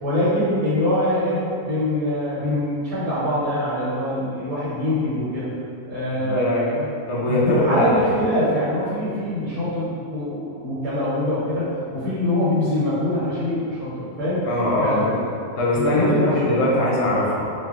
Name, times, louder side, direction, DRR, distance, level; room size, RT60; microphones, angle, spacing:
voice 1, 0.0-5.5 5.9-6.9 7.2-14.5 14.8-15.1 15.7-16.6, left 1 dB, 90° right, -11 dB, 1.3 m, -24 dB
voice 2, 6.1-6.7 7.1-7.9 14.5-15.2 15.6-17.4, left 1 dB, 65° left, -5 dB, 0.7 m, -21 dB
2.4 x 2.3 x 3.5 m, 2.5 s
omnidirectional pair, 1.5 m